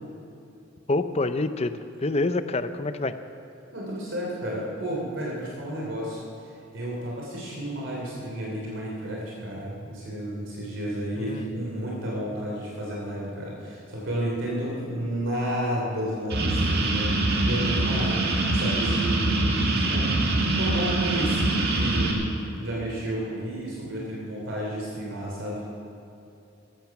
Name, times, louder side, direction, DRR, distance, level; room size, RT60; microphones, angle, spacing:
voice 1, 0.9-3.1 11.2-11.5, left 2 dB, 30° left, 11 dB, 0.6 m, -27 dB
voice 2, 3.7-22.3 22.6-25.6, right 1 dB, 65° right, -4 dB, 3.1 m, -32 dB
sound 1, 16.3-22.1, right 2 dB, 50° right, 2.0 m, -24 dB
15.0 x 15.0 x 6.0 m, 2.7 s
head